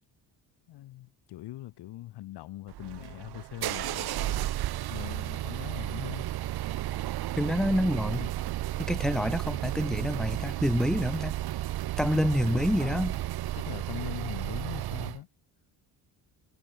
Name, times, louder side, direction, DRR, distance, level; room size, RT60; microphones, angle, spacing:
voice 1, 0.7-4.5 4.9-6.3 8.2-8.3 12.8-13.1 13.5-15.3, left 15 dB, 80° left, 3.7 m, -41 dB
sound 1, 2.7-15.2, right 14 dB, 70° right, 2.3 m, -33 dB
sound 2, 2.8-14.9, right 16 dB, 85° right, 3.7 m, -44 dB
voice 2, 7.4-8.3 8.8-11.3 12.0-13.2, equal, ahead, 2.8 m, -27 dB
cardioid pair, 155°, 40 cm